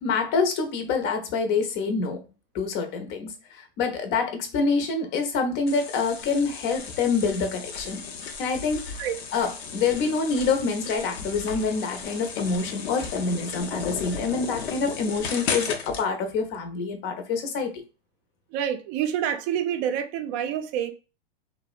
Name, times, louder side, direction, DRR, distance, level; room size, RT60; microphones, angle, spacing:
voice 1, 0.0-2.3 2.5-8.0 8.4-8.8 9.3-17.8, left 4 dB, 40° left, 0.6 m, -26 dB
sound 1, 5.7-16.1, left 6 dB, 85° left, 0.7 m, -35 dB
voice 2, 18.5-20.9, right 9 dB, 45° right, 0.5 m, -27 dB
2.7 x 2.1 x 2.3 m
hypercardioid pair, 130°, 30 cm